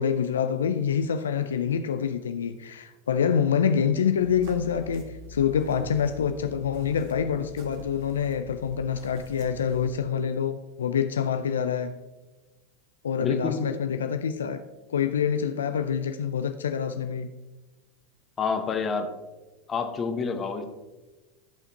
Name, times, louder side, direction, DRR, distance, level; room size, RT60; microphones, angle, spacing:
voice 1, 0.0-11.9 13.0-14.6 14.9-17.3, left 7 dB, 80° left, 8 dB, 0.4 m, -26 dB
sound 1, 4.1-9.9, left 1 dB, 55° right, 1.7 m, -45 dB
voice 2, 13.2-13.7 18.4-19.1 19.7-20.6, left 5 dB, 30° left, 6 dB, 1.2 m, -28 dB
14.5 x 5.7 x 2.9 m, 1.2 s
hypercardioid pair, 85°, 0 cm